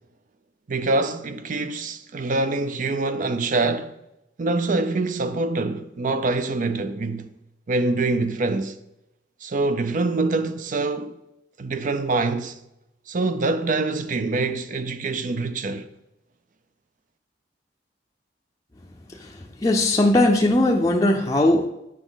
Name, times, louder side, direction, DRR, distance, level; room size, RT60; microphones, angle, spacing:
voice 1, 0.7-4.0 4.4-7.4 7.7-8.8 9.4-11.2 11.6-12.6 13.1-15.9, right 3 dB, 45° right, 0.5 m, -25 dB
voice 2, 19.1-21.7, left 1 dB, 20° left, 0.5 m, -19 dB
8.2 x 6.0 x 3.9 m
head